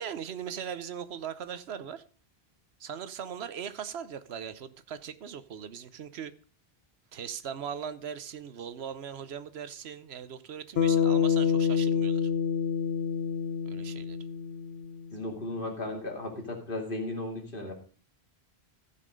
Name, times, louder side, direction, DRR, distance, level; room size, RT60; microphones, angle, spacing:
voice 1, 0.0-2.0 2.8-6.3 7.1-12.3 13.6-14.2, right 8 dB, 80° right, 1.1 m, -39 dB
Bass guitar, 10.8-15.1, left 7 dB, 80° left, 1.0 m, -27 dB
voice 2, 15.1-17.7, left 2 dB, 55° left, 2.9 m, -35 dB
15.0 x 5.8 x 5.0 m
omnidirectional pair, 1.1 m